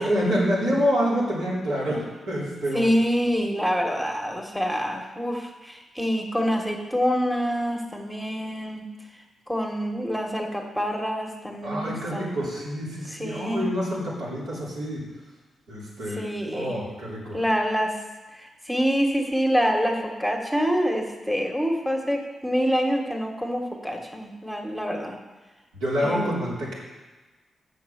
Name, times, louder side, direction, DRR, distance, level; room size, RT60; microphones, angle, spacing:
voice 1, 0.0-2.9 11.6-15.0 15.7-17.4 25.7-26.7, equal, 90° right, -7 dB, 3.6 m, -27 dB
voice 2, 2.7-8.9 9.5-12.4 13.1-13.7 16.2-16.8 17.3-17.9 18.3-25.2 26.0-26.3, equal, ahead, 2 dB, 1.6 m, -26 dB
7.7 x 6.5 x 7.1 m, 1.2 s
cardioid pair, 60°, 0 cm